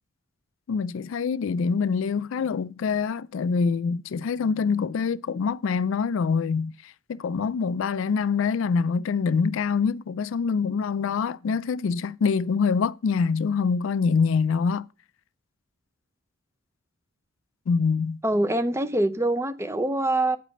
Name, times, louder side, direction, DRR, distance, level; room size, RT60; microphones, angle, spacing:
voice 1, 0.7-14.9 17.7-18.2, left 5 dB, 65° left, 0.3 m, -25 dB
voice 2, 18.2-20.4, right 1 dB, 15° right, 0.6 m, -24 dB
8.6 x 5.0 x 6.4 m
head